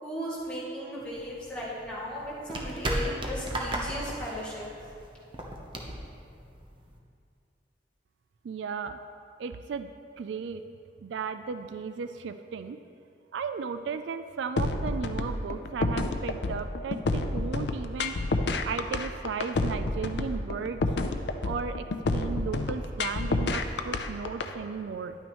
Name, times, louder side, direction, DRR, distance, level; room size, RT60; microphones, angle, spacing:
voice 1, 0.0-4.7, equal, 5° left, -9 dB, 2.4 m, -36 dB
sound 1, 1.0-7.0, right 1 dB, 25° right, 0.8 m, -35 dB
voice 2, 8.4-9.0 9.4-9.9 10.2-10.6 11.0-12.8 13.3-18.1 18.6-20.8 21.4-21.9 22.1-25.2, right 5 dB, 75° right, 10 dB, 0.3 m, -35 dB
sound 2, 14.6-24.5, left 2 dB, 65° left, 0.5 m, -29 dB
11.0 x 9.1 x 3.0 m, 2.5 s
head